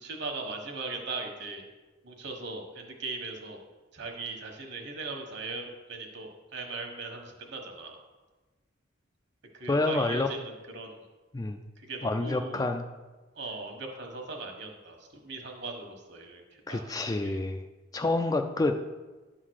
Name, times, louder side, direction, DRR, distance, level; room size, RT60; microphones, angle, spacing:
voice 1, 0.0-1.6 2.0-3.6 3.9-8.0 9.5-11.0 11.9-12.7 13.4-14.9 15.2-16.4 16.7-16.8 17.2-17.4, right 3 dB, 55° right, 2 dB, 1.4 m, -39 dB
voice 2, 9.7-10.3 11.3-11.6 12.0-12.9 16.7-17.6 17.9-18.8, left 2 dB, 20° left, 6 dB, 0.3 m, -28 dB
10.5 x 3.8 x 6.4 m, 1.2 s
head